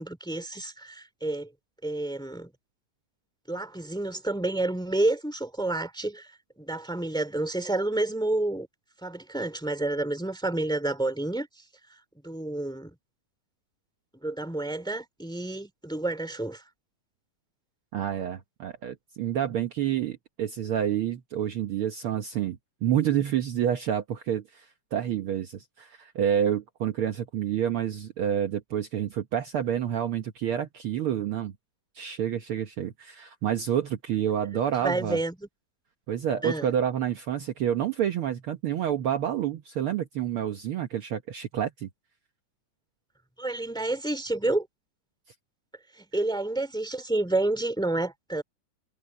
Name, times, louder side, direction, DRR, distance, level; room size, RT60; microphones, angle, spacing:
voice 1, 0.0-1.5 1.8-2.5 3.5-6.3 6.6-8.7 9.0-11.5 12.2-12.9 14.2-16.6 34.8-35.5 36.4-36.7 43.4-44.7 46.0-48.4, right 2 dB, ahead, 1.8 m, -29 dB
voice 2, 17.9-31.5 31.9-35.2 36.1-41.9, right 9 dB, 85° right, 1.2 m, -28 dB
omnidirectional pair, 3.8 m